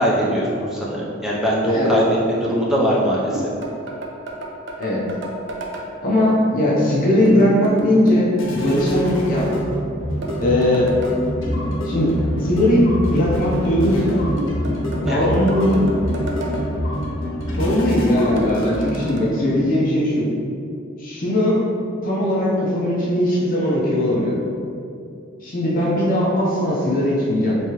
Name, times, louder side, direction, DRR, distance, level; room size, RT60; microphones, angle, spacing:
voice 1, 0.0-3.4 15.0-15.3, equal, ahead, -6 dB, 0.4 m, -20 dB
sound 1, 3.3-5.9 7.2-8.3 10.2-11.2 14.4-16.6 18.4-19.2, right 1 dB, 65° right, 0.5 m, -31 dB
voice 2, 6.0-9.5 10.4-10.9 11.8-14.2 14.9-15.8 17.6-20.3 21.0-21.7 22.0-24.4 25.4-27.6, left 1 dB, 45° left, -6 dB, 0.6 m, -19 dB
sound 2, 6.7-19.1, equal, 75° left, 0.8 m, -26 dB
3.4 x 3.2 x 2.8 m, 2.6 s
head